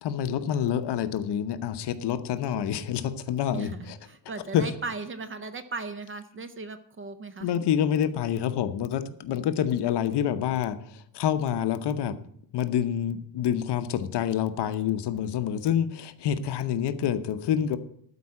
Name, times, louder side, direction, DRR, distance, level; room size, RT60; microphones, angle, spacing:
voice 1, 0.0-4.0 4.5-4.7 7.4-12.2 12.5-17.8, left 9 dB, 60° left, 10 dB, 0.9 m, -27 dB
voice 2, 3.5-7.7, right 3 dB, 25° right, 12 dB, 0.6 m, -37 dB
12.5 x 4.7 x 8.6 m, 0.68 s
cardioid pair, 160°, 45 cm